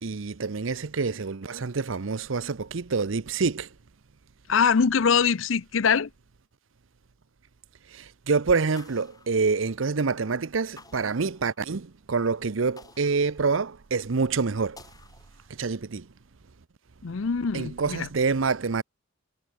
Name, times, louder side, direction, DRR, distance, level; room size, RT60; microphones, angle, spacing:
voice 1, 0.0-3.7 7.9-14.8 15.6-16.1 17.5-18.8, right 4 dB, 75° right, 0.7 m, -27 dB
voice 2, 4.5-6.1 17.0-18.1, left 6 dB, 75° left, 0.6 m, -23 dB
sound 1, 8.8-10.1 10.8-11.9 12.8-14.0 14.8-15.9, left 3 dB, 20° left, 3.1 m, -54 dB
head